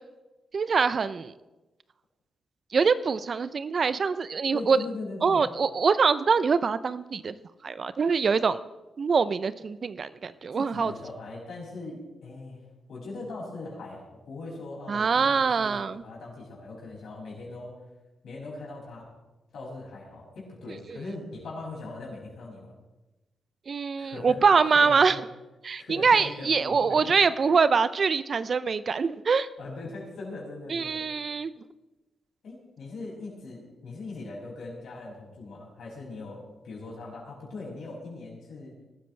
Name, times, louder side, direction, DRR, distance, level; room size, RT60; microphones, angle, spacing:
voice 1, 0.5-1.3 2.7-4.8 5.2-7.3 7.6-8.6 9.0-10.9 14.9-16.0 23.7-25.2 25.6-29.5 30.7-31.5, right 5 dB, 55° right, 15 dB, 0.6 m, -24 dB
voice 2, 4.5-5.4 10.5-12.6 12.9-17.8 18.2-19.1 19.5-22.7 24.0-24.4 24.7-25.2 25.8-27.1 27.4-27.6 29.6-31.0 32.4-38.8, left 3 dB, 70° left, -3 dB, 6.6 m, -40 dB
23.0 x 13.0 x 3.4 m, 1.1 s
supercardioid pair, 50°, 0 cm